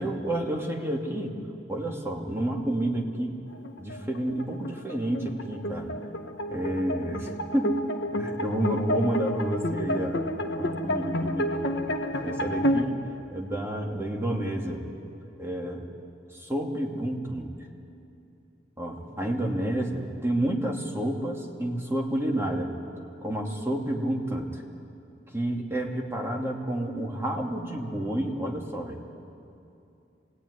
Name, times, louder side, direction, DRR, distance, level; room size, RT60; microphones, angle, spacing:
voice 1, 0.0-1.3 1.7-3.4 3.8-5.9 6.5-7.8 8.1-11.6 12.2-13.0 13.3-14.8 15.4-15.9 16.3-17.5 18.8-22.7 23.2-24.6 25.3-29.0, right 1 dB, 15° right, 0 dB, 2.5 m, -30 dB
sound 1, 3.5-12.8, equal, 70° left, 1.3 m, -30 dB
26.5 x 18.5 x 9.8 m, 2.7 s
head